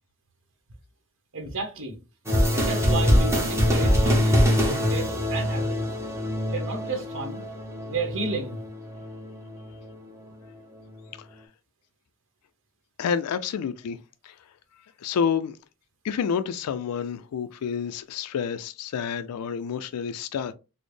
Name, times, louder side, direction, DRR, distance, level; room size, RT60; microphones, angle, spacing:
voice 1, 1.3-2.0 2.5-5.9 6.5-7.4 7.9-8.6, right 3 dB, 60° right, 1.0 m, -32 dB
sound 1, 2.3-9.9, equal, 10° right, 0.8 m, -24 dB
voice 2, 13.0-14.0 14.2-14.4 15.0-15.6 16.0-20.5, left 7 dB, 80° left, 0.3 m, -29 dB
4.1 x 2.0 x 3.2 m
head